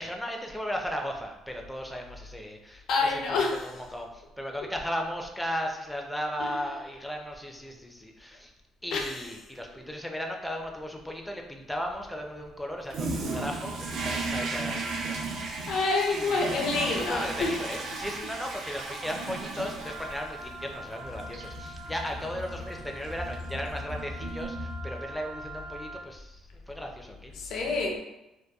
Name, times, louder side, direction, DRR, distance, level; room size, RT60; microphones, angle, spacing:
voice 1, 0.0-8.5 8.8-15.1 15.4-15.8 16.1-26.4 26.7-27.3 27.6-27.7, equal, 5° left, 2 dB, 0.4 m, -36 dB
voice 2, 2.9-3.6 6.4-6.6 8.9-9.2 15.7-17.5 27.4-28.0, left 3 dB, 70° left, 1 dB, 0.5 m, -27 dB
Toilet flush, 12.9-25.2, right 2 dB, 65° right, 0.4 m, -36 dB
Wind instrument woodwind instrument, 19.8-26.1, right 1 dB, 90° left, 0.8 m, -44 dB
2.7 x 2.2 x 2.2 m, 0.96 s
cardioid pair, 100°, 0 cm